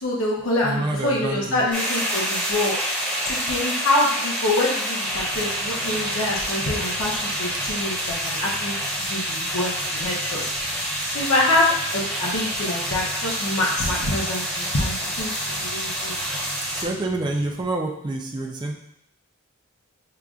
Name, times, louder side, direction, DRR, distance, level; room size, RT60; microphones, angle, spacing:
voice 1, 0.0-2.8 3.3-8.8 9.1-10.7 11.1-15.3 15.6-16.1, left 1 dB, 70° left, -3 dB, 0.8 m, -25 dB
voice 2, 0.6-1.7 16.7-18.7, right 2 dB, 20° right, 0 dB, 0.4 m, -27 dB
sound 1, 1.7-16.8, equal, 5° left, 1.0 m, -27 dB
sound 2, 5.0-17.6, right 1 dB, 65° right, 0.8 m, -44 dB
6.7 x 2.5 x 2.4 m, 0.76 s
head